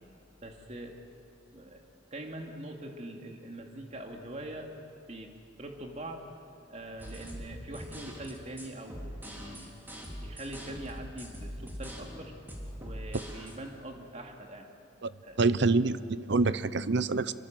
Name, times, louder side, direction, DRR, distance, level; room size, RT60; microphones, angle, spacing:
voice 1, 0.4-1.0 1.5-1.8 2.1-4.7 5.1-6.3 6.7-9.7 10.2-12.3 12.8-14.7 15.2-15.4, right 1 dB, 40° right, 2 dB, 2.7 m, -43 dB
sound 1, 7.0-13.6, equal, 10° right, 3.6 m, -42 dB
voice 2, 15.4-17.3, right 3 dB, 65° right, 15 dB, 0.7 m, -26 dB
27.0 x 24.5 x 7.8 m, 2.6 s
head